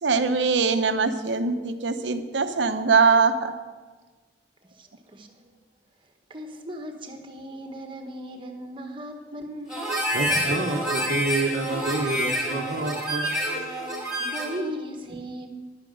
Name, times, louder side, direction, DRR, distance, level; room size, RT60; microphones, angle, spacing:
voice 1, 0.0-3.5, right 4 dB, 75° right, 9 dB, 0.9 m, -22 dB
voice 2, 4.7-5.4 6.3-9.9 14.2-15.5, equal, 30° right, 4 dB, 1.5 m, -37 dB
Harmonica, 9.7-14.6, equal, 5° right, 3.6 m, -28 dB
voice 3, 10.1-13.7, right 2 dB, 55° right, -2 dB, 1.0 m, -28 dB
11.0 x 9.4 x 6.5 m, 1.4 s
head